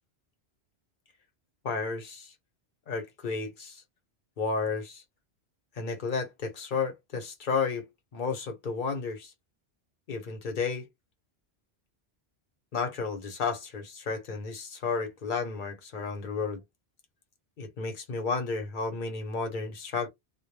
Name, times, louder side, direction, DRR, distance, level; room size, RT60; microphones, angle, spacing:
voice 1, 1.6-2.3 2.9-3.8 4.4-5.0 5.7-9.3 10.1-10.9 12.7-16.6 17.6-20.1, left 4 dB, 55° left, 0.9 m, -32 dB
2.2 x 2.1 x 3.1 m
omnidirectional pair, 1.1 m